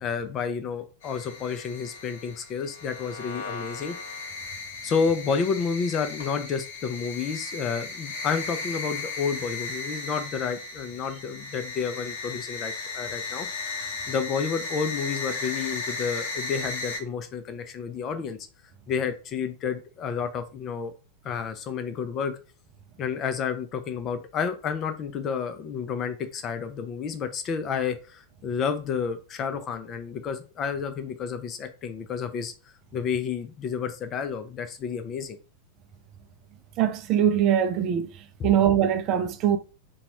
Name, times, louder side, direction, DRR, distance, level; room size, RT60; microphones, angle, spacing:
voice 1, 0.0-3.9 4.8-13.5 14.1-18.4 18.9-20.9 21.2-22.3 23.0-32.5 32.9-35.4 38.4-38.5, left 6 dB, 30° left, 0.6 m, -30 dB
sound 1, 1.0-17.0, left 3 dB, 60° left, 1.1 m, -36 dB
voice 2, 36.8-38.1 38.4-39.6, right 9 dB, 40° right, 0.5 m, -22 dB
3.9 x 2.3 x 2.9 m
figure-of-eight pair, 90°, 0 cm